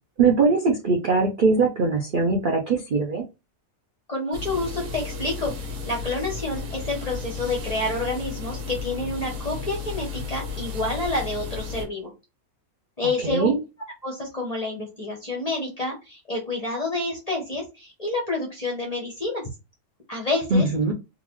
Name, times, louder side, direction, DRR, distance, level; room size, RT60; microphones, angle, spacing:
voice 1, 0.2-3.2 13.2-13.6 20.5-20.9, right 4 dB, 60° right, 1 dB, 0.5 m, -21 dB
voice 2, 4.1-5.5 5.9-12.1 13.0-13.5 14.0-19.4 20.1-20.7, left 2 dB, 35° left, 0 dB, 0.6 m, -28 dB
sound 1, 4.3-11.9, left 5 dB, 80° right, 1.4 m, -34 dB
3.8 x 2.4 x 3.0 m, 0.26 s
omnidirectional pair, 1.6 m